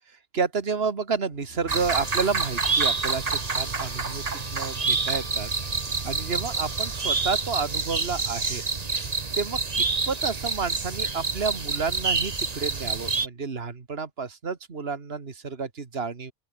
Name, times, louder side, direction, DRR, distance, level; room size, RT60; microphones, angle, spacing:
voice 1, 0.3-4.2 4.5-5.5 6.1-8.6 9.4-16.3, right 5 dB, 65° right, 2.1 m, -30 dB
sound 1, 1.3-12.5, left 1 dB, 70° left, 6.7 m, -52 dB
sound 2, 1.7-13.3, right 4 dB, 40° right, 1.4 m, -27 dB
Bowed string instrument, 1.8-7.2, left 1 dB, 35° left, 7.0 m, -49 dB
open air
omnidirectional pair, 1.1 m